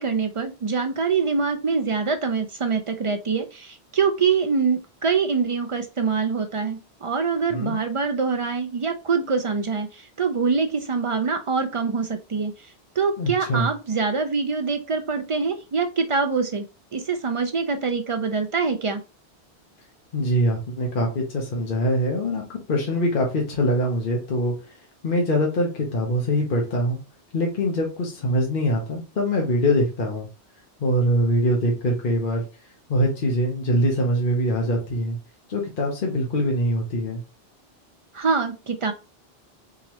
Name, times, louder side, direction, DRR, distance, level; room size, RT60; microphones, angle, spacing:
voice 1, 0.0-12.5 13.0-16.6 16.9-19.0 38.1-38.9, right 5 dB, 55° right, 6 dB, 0.3 m, -24 dB
voice 2, 13.2-13.7 20.1-22.4 22.7-24.8 25.0-27.0 27.3-30.3 30.8-32.4 32.9-35.2 35.5-37.2, equal, 55° left, 0 dB, 1.0 m, -23 dB
3.8 x 2.9 x 3.0 m, 0.31 s
omnidirectional pair, 1.1 m